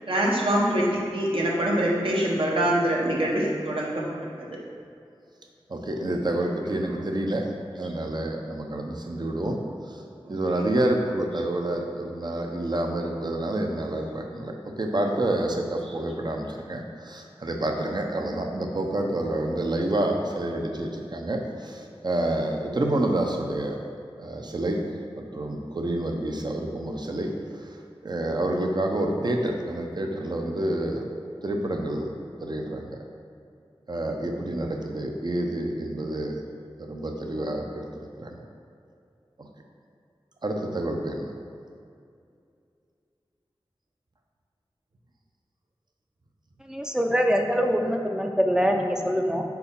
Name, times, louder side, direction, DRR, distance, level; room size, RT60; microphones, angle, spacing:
voice 1, 0.1-4.0 4.4-4.5 10.2-10.6, right 1 dB, 65° right, -4 dB, 1.1 m, -24 dB
voice 2, 5.7-7.5 7.8-9.6 9.9-10.0 10.3-14.5 14.8-23.8 24.2-24.8 25.2-27.3 27.7-27.8 28.0-31.0 31.4-32.1 32.4-33.0 33.9-36.4 36.8-37.8 38.2-38.4 39.4-39.5 40.4-41.3, right 1 dB, 45° right, 2 dB, 0.7 m, -28 dB
voice 3, 46.7-49.4, equal, 5° right, 2 dB, 0.5 m, -24 dB
4.7 x 4.0 x 5.2 m, 2.4 s
wide cardioid pair, 65°, 10 cm